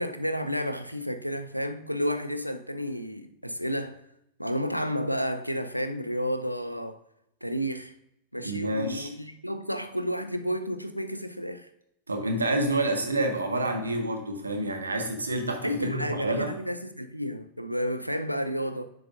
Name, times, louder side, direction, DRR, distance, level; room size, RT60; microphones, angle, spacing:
voice 1, 0.0-4.0 4.4-7.0 7.4-7.9 8.3-11.7 15.6-18.9, equal, 90° left, 0.5 m, -31 dB
voice 2, 8.4-9.1 12.1-16.5, right 1 dB, 80° right, 1.3 m, -28 dB
10.0 x 7.6 x 2.5 m
figure-of-eight pair, 90°, 0 cm